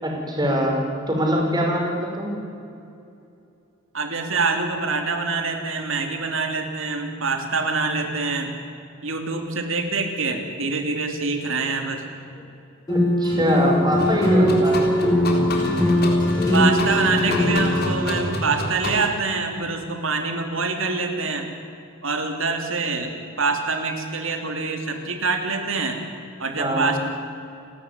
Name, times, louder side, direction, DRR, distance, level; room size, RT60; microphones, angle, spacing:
voice 1, 0.0-2.4 12.9-14.9 26.6-26.9, equal, 20° right, -1 dB, 5.8 m, -23 dB
voice 2, 3.9-8.5 9.0-12.1 16.5-21.5 22.0-26.0 26.4-27.0, right 4 dB, 70° right, 5 dB, 3.2 m, -25 dB
sound 1, 12.9-17.8, left 1 dB, 20° left, 7.9 m, -20 dB
sound 2, 14.0-19.0, left 1 dB, 50° left, 4.0 m, -28 dB
29.5 x 13.0 x 9.8 m, 2.6 s
head